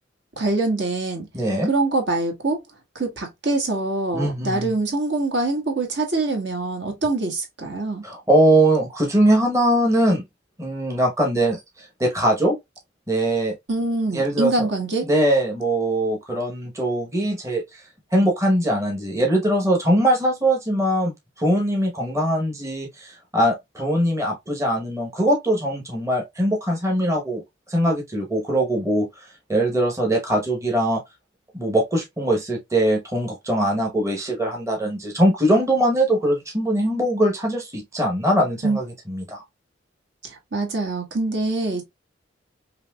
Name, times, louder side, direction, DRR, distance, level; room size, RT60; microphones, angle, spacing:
voice 1, 0.4-1.3 1.7-2.6 2.9-8.0 13.7-15.0 38.6-38.8 40.2-41.8, right 2 dB, 60° right, 1.4 m, -24 dB
voice 2, 1.3-1.7 4.1-4.7 8.0-10.2 10.6-12.6 13.1-13.5 14.1-14.7 15.0-17.8 18.1-27.4 27.7-31.0 31.5-39.4, right 1 dB, 15° right, 0.9 m, -21 dB
5.5 x 2.6 x 2.2 m
head